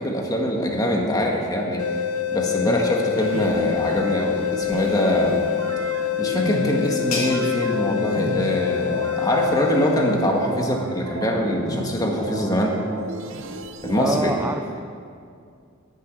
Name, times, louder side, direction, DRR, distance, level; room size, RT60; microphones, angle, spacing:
voice 1, 0.0-1.8 2.3-5.4 6.2-12.8 13.8-14.3, equal, 15° left, 0 dB, 1.6 m, -23 dB
sound 1, 1.8-10.7, left 10 dB, 90° left, 0.6 m, -26 dB
sound 2, 3.2-14.2, right 2 dB, 60° right, 0.8 m, -34 dB
sound 3, 5.8-11.2, left 3 dB, 75° left, 3.3 m, -38 dB
voice 2, 14.0-14.7, right 2 dB, 10° right, 5 dB, 0.4 m, -26 dB
10.0 x 9.9 x 9.0 m, 2.3 s
head